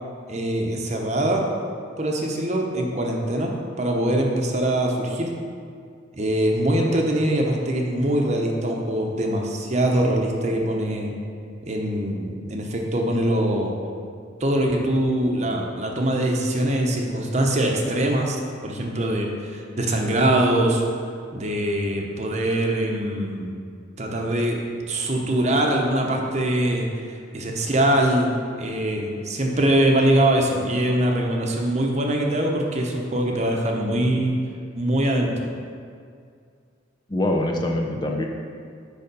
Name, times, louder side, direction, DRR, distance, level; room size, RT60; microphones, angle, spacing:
voice 1, 0.3-1.4 2.0-5.3 6.2-11.1 11.6-13.7 14.4-20.8 21.3-23.5 24.0-24.6 24.9-34.4 34.7-35.5, right 1 dB, 35° right, 1 dB, 0.8 m, -23 dB
voice 2, 37.1-38.3, left 1 dB, 25° left, 2 dB, 0.5 m, -24 dB
6.8 x 5.1 x 5.3 m, 2.2 s
head